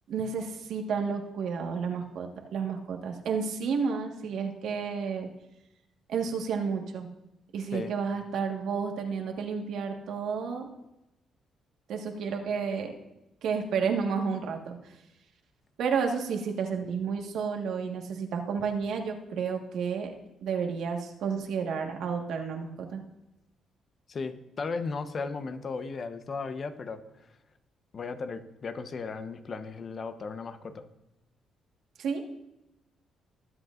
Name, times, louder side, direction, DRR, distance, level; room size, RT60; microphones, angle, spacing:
voice 1, 0.1-5.3 6.1-7.1 7.5-10.7 11.9-12.9 13.4-14.8 15.8-20.1 20.4-23.0 32.0-32.2, right 6 dB, 75° right, 3 dB, 1.5 m, -31 dB
voice 2, 24.1-27.3 27.9-30.9, left 4 dB, 45° left, 9 dB, 0.9 m, -36 dB
21.0 x 8.0 x 2.5 m, 0.91 s
cardioid pair, 90°, 0 cm